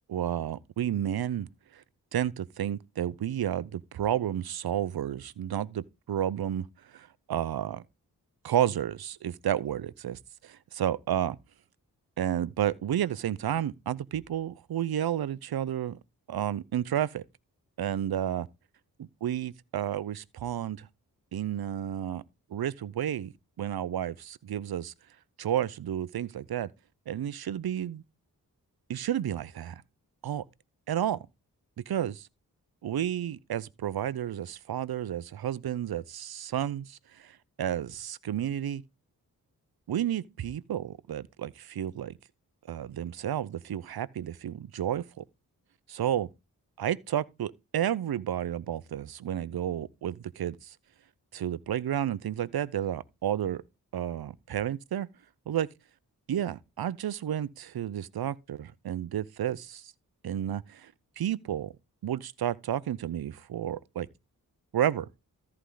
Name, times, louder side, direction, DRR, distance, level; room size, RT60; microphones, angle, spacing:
voice 1, 0.1-1.5 1.7-1.8 2.1-6.7 6.9-7.8 8.4-11.4 12.2-16.0 16.3-17.2 17.8-18.5 19.0-20.9 21.3-22.2 22.5-24.9 25.4-26.7 27.1-28.0 28.9-29.8 30.2-30.4 30.9-31.2 31.9-32.3 32.8-38.8 39.9-42.1 42.7-45.2 45.9-46.3 46.8-50.8 51.3-53.6 53.9-55.1 55.5-55.7 56.3-59.9 60.2-61.7 62.0-64.1 64.7-65.1, right 10 dB, 70° right, 0.8 m, -31 dB
14.0 x 4.8 x 3.9 m
cardioid pair, 40°, 39 cm